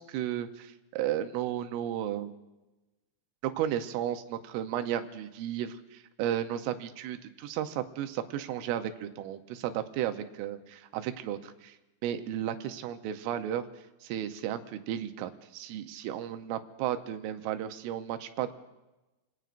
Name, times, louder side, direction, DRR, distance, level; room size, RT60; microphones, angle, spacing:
voice 1, 0.0-2.3 3.4-11.8 12.0-13.7 14.0-18.5, right 11 dB, 85° right, 8 dB, 3.3 m, -34 dB
28.5 x 18.5 x 2.5 m, 1.1 s
omnidirectional pair, 5.6 m